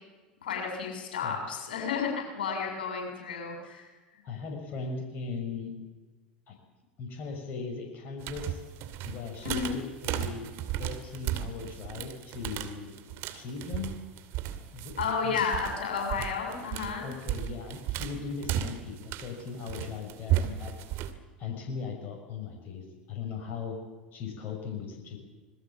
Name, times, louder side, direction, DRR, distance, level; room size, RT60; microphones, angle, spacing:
voice 1, 0.4-3.9 9.4-9.8 15.0-17.1, left 6 dB, 70° left, 2 dB, 7.0 m, -32 dB
voice 2, 4.2-5.7 6.5-6.6 7.0-8.6 9.0-10.5 10.8-12.9 13.3-13.9 14.7-14.9 15.2-15.3 17.0-20.7 21.4-23.8 24.1-25.2, left 5 dB, 40° left, 2 dB, 6.2 m, -38 dB
sound 1, 8.2-21.1, right 12 dB, 50° right, 2.4 m, -34 dB
26.5 x 21.0 x 7.3 m, 1.3 s
figure-of-eight pair, 80°, 5 cm